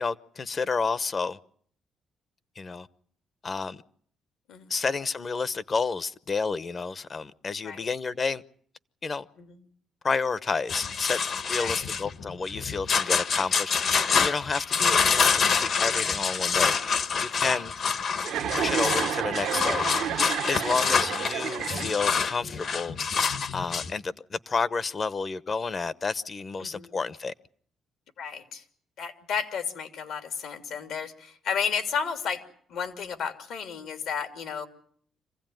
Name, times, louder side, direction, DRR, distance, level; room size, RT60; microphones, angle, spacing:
voice 1, 0.0-1.4 2.6-2.9 3.4-3.8 4.7-8.4 9.0-9.3 10.0-11.2 11.5-17.7 18.5-23.2 23.5-27.3, left 4 dB, 40° left, 0.9 m, -30 dB
sound 1, 10.7-23.9, left 6 dB, 55° left, 1.3 m, -26 dB
Chuckle chortle, 18.2-22.3, right 10 dB, 80° right, 0.9 m, -31 dB
voice 2, 26.6-27.0 28.2-28.6 29.0-32.4 32.7-34.7, left 6 dB, 80° left, 2.8 m, -33 dB
26.0 x 16.0 x 9.2 m
cardioid pair, 90°, 0 cm